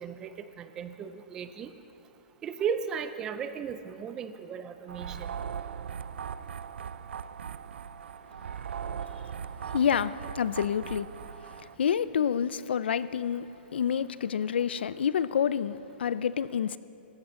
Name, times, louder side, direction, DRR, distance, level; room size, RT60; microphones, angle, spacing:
voice 1, 0.0-1.7 2.4-5.3, right 7 dB, 10° right, 0.3 m, -35 dB
sound 1, 4.9-11.7, right 7 dB, 90° right, 0.4 m, -39 dB
voice 2, 9.7-11.1 11.8-16.8, left 8 dB, 70° left, 0.5 m, -28 dB
19.5 x 15.5 x 3.8 m
hypercardioid pair, 180°, 6 cm